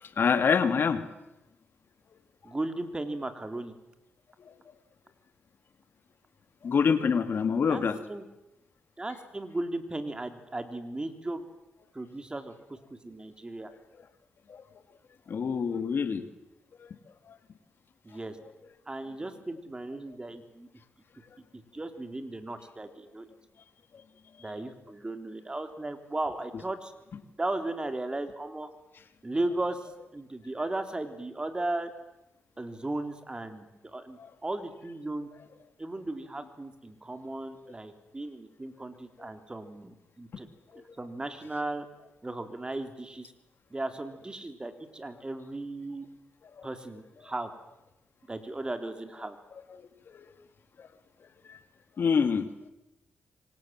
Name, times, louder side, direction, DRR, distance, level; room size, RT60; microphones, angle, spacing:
voice 1, 0.0-1.0 4.4-4.5 6.6-8.0 14.5-14.6 15.3-16.2 17.3-17.4 34.2-34.3 40.7-40.8 46.6-46.7 49.7-50.3 50.8-50.9 51.5-51.6 52.0-52.5, left 6 dB, 60° left, 11 dB, 2.3 m, -26 dB
voice 2, 2.4-3.7 7.7-8.2 9.0-11.4 11.9-13.7 18.0-18.4 18.9-20.7 21.5-23.3 24.4-26.9 27.4-28.7 29.2-31.9 32.6-35.3 35.8-40.5 40.8-41.9 42.2-43.3 43.7-46.1 46.6-47.5 48.3-49.4, right 2 dB, 20° right, 9 dB, 3.4 m, -36 dB
26.5 x 24.5 x 7.6 m, 0.94 s
cardioid pair, 75°, 4 cm